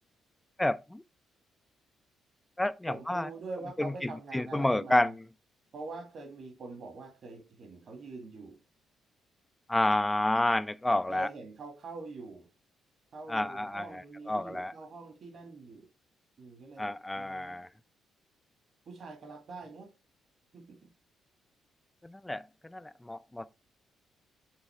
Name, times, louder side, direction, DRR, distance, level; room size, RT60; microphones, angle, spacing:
voice 1, 0.6-1.0 2.6-3.3 3.8-5.2 9.7-11.3 13.3-14.0 14.3-14.7 16.8-17.7 22.0-23.5, left 1 dB, 10° left, 0.4 m, -30 dB
voice 2, 2.9-5.1 5.7-8.6 11.1-12.5 13.1-15.9 16.4-17.6 18.9-19.9 20.5-20.9, right 3 dB, 55° right, 2.1 m, -44 dB
8.8 x 4.2 x 3.4 m
cardioid pair, 90°, 0 cm